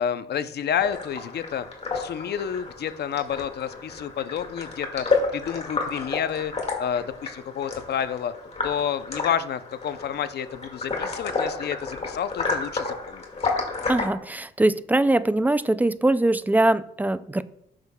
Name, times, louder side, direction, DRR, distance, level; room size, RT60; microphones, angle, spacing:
voice 1, 0.0-1.7 1.9-5.1 5.3-6.5 6.8-8.3 8.6-13.2, left 8 dB, 55° left, 12 dB, 0.6 m, -29 dB
sound 1, 0.8-14.1, left 3 dB, 35° left, 2.0 m, -31 dB
voice 2, 13.9-17.4, right 2 dB, 10° right, 15 dB, 0.3 m, -22 dB
12.0 x 6.4 x 2.3 m, 0.74 s
cardioid pair, 90°, 20 cm